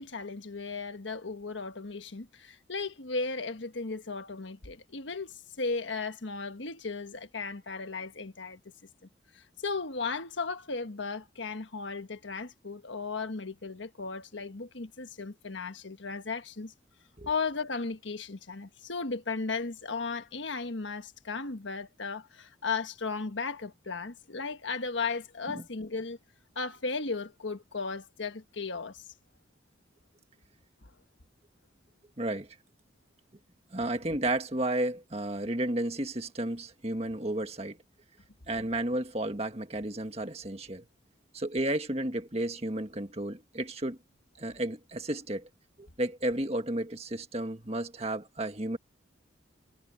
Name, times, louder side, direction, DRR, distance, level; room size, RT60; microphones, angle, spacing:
voice 1, 0.0-8.6 9.3-16.7 17.3-26.2 26.5-29.0 30.8-30.9, left 4 dB, 80° left, 1.4 m, -36 dB
voice 2, 32.2-32.5 33.7-37.8 38.5-40.8 41.3-44.0 44.4-45.5 45.8-48.8, right 1 dB, 30° right, 1.7 m, -32 dB
head